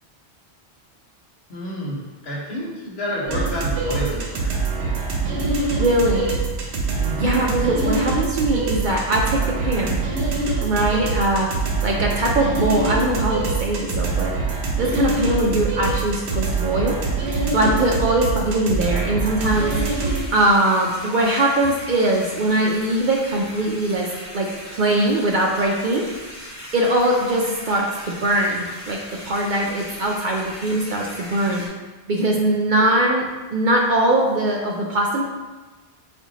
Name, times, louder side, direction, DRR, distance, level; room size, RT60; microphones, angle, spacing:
voice 1, 1.5-4.5 7.0-7.4, equal, 70° left, -5 dB, 1.3 m, -29 dB
sound 1, 3.3-20.2, right 4 dB, 80° right, 1.0 m, -24 dB
voice 2, 5.8-6.3 7.2-10.0 10.6-11.5 11.8-14.4 14.8-17.0 17.3-24.1 24.3-26.5 26.7-29.0 29.2-31.6 32.1-33.3 33.5-35.2, right 1 dB, 60° right, -1 dB, 0.6 m, -21 dB
sound 2, 19.4-31.7, equal, 20° left, 0.7 m, -39 dB
4.4 x 2.5 x 4.0 m, 1.2 s
omnidirectional pair, 1.1 m